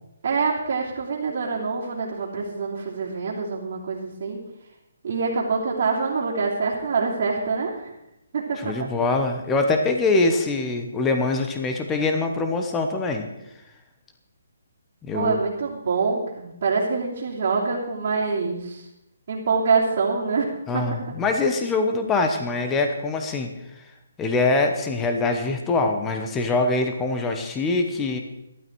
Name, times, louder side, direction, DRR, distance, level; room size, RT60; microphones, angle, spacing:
voice 1, 0.2-4.4 5.0-7.9 8.3-8.9 15.1-18.9 19.3-20.5 20.7-21.0, right 4 dB, 40° right, -6 dB, 3.0 m, -25 dB
voice 2, 8.6-13.3 15.0-15.4 20.7-23.5 24.2-28.2, left 3 dB, 10° left, 5 dB, 1.0 m, -23 dB
15.5 x 12.0 x 4.6 m, 0.86 s
hypercardioid pair, 170°, 0 cm